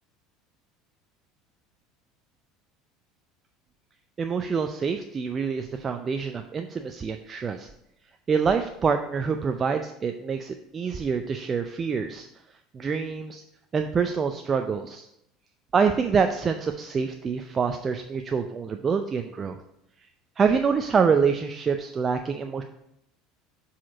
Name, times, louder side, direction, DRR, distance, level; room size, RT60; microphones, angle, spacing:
voice 1, 4.2-7.7 8.3-12.3 12.7-13.4 13.7-15.1 15.7-19.6 20.4-22.6, right 5 dB, 30° right, 6 dB, 0.5 m, -26 dB
7.3 x 4.3 x 4.9 m, 0.78 s
figure-of-eight pair, 70°, 0 cm